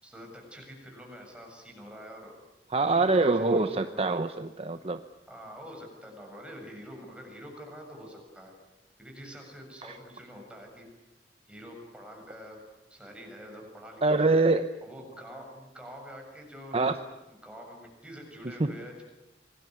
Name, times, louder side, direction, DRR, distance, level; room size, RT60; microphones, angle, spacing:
voice 1, 0.0-2.4 2.8-4.1 5.3-8.5 9.0-10.9 11.5-12.6 12.9-14.3 14.8-17.0 17.3-19.0, equal, 5° right, 1 dB, 7.1 m, -46 dB
voice 2, 2.7-5.0 9.8-10.0 14.0-14.7 16.7-16.9 18.4-18.8, right 3 dB, 35° right, 9 dB, 0.8 m, -25 dB
25.5 x 20.0 x 9.4 m, 0.97 s
head